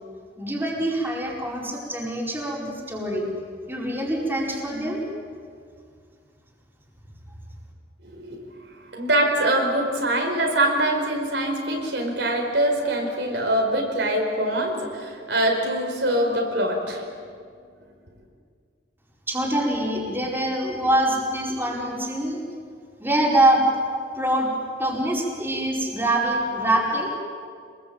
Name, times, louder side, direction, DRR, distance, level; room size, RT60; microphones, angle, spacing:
voice 1, 0.4-3.3 3.7-5.0 19.3-22.4 23.0-23.6 24.1-24.5 24.8-27.1, right 1 dB, 10° right, -3 dB, 5.0 m, -24 dB
voice 2, 8.0-8.4 8.9-17.0, right 1 dB, 75° right, 1 dB, 4.8 m, -23 dB
27.5 x 21.0 x 8.8 m, 2.2 s
head